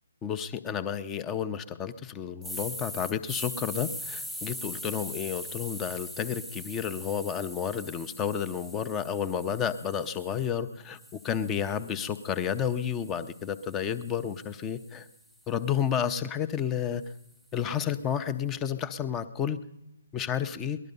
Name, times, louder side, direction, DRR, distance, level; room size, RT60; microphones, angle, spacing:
voice 1, 0.2-15.1 15.5-17.0 17.5-19.6 20.1-20.8, left 8 dB, 15° left, 11 dB, 0.7 m, -31 dB
sound 1, 2.4-10.5 11.0-15.2, equal, ahead, 1.1 m, -42 dB
19.0 x 12.0 x 5.4 m, 0.93 s
figure-of-eight pair, 140°, 0 cm